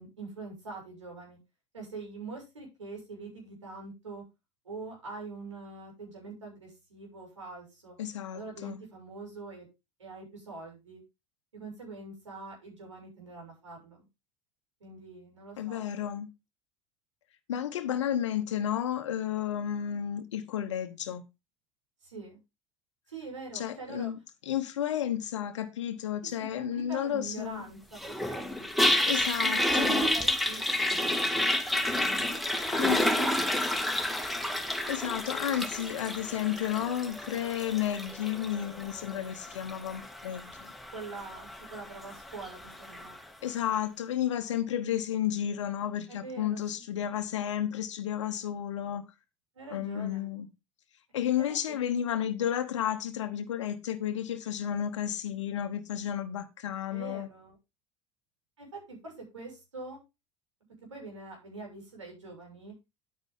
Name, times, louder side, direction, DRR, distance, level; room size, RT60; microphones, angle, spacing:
voice 1, 0.0-1.4 1.7-4.2 4.6-8.0 8.3-9.6 10.0-11.0 11.5-14.0 14.8-15.8 22.0-22.4 23.1-24.1 26.4-28.9 29.4-29.6 30.1-31.5 31.9-32.9 33.1-33.2 33.7-33.8 40.9-43.2 46.1-46.6 47.0-47.1 49.5-50.3 51.4-51.6 56.9-57.5 58.6-60.0 60.9-62.7, right 3 dB, 85° right, 6.9 m, -44 dB
voice 2, 8.0-8.8 15.6-16.3 17.5-21.2 23.5-27.7 29.1-30.0 32.7-33.1 34.9-40.7 43.4-49.0 49.7-50.5 51.1-57.3, left 10 dB, 75° left, 1.0 m, -32 dB
Toilet flush, 28.0-43.2, left 1 dB, ahead, 2.3 m, -30 dB
10.5 x 9.0 x 3.7 m
hypercardioid pair, 70°, 15 cm